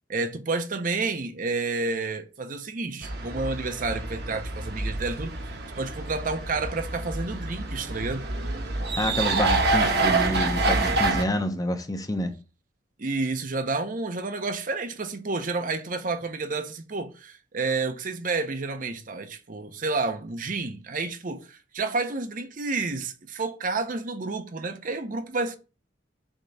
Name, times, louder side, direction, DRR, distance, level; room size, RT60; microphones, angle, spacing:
voice 1, 0.1-5.3 5.8-8.2 13.0-25.6, right 3 dB, 45° right, 0.7 m, -30 dB
sound 1, 3.0-11.2, right 3 dB, 60° right, 1.1 m, -27 dB
voice 2, 9.0-12.3, left 1 dB, 20° left, 0.7 m, -28 dB
7.2 x 2.9 x 5.4 m
head